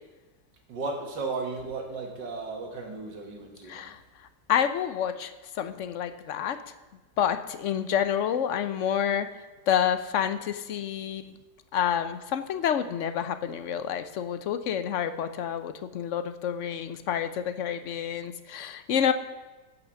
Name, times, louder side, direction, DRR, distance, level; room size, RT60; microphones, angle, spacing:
voice 1, 0.7-3.9, right 3 dB, 85° right, 3 dB, 2.4 m, -35 dB
voice 2, 3.7-4.0 4.5-6.6 7.2-9.3 9.7-11.3 11.7-19.1, left 9 dB, 65° left, 11 dB, 0.8 m, -28 dB
11.5 x 6.0 x 7.5 m, 1.2 s
omnidirectional pair, 1.9 m